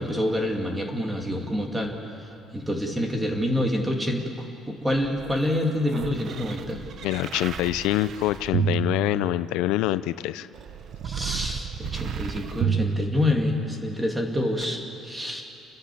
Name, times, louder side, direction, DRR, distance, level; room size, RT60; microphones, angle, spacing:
voice 1, 0.0-6.8 11.0-15.4, left 1 dB, 10° right, 2 dB, 2.5 m, -27 dB
sound 1, 4.9-9.8 10.5-13.9 14.6-14.7, right 6 dB, 50° right, 0.8 m, -31 dB
voice 2, 7.0-10.5, left 15 dB, 90° left, 15 dB, 0.5 m, -25 dB
29.5 x 12.0 x 8.6 m, 2.7 s
cardioid pair, 130°, 0 cm